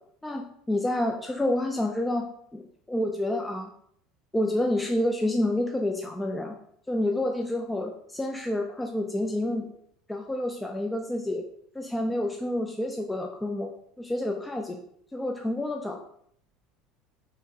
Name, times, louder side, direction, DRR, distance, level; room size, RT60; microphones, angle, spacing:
voice 1, 0.2-3.7 4.3-6.6 6.9-9.7 10.1-11.4 11.7-13.7 14.0-14.8 15.1-16.0, left 1 dB, 10° left, 2 dB, 0.3 m, -28 dB
3.2 x 2.9 x 2.7 m, 0.68 s
supercardioid pair, 110°, 0 cm